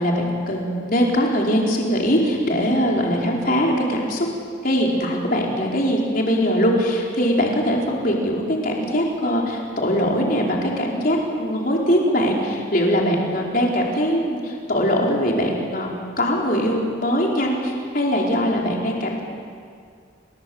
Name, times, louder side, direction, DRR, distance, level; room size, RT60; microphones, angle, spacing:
voice 1, 0.0-4.3 4.6-15.9 16.2-19.2, equal, 45° left, -2 dB, 4.7 m, -21 dB
29.0 x 22.0 x 8.1 m, 2.2 s
head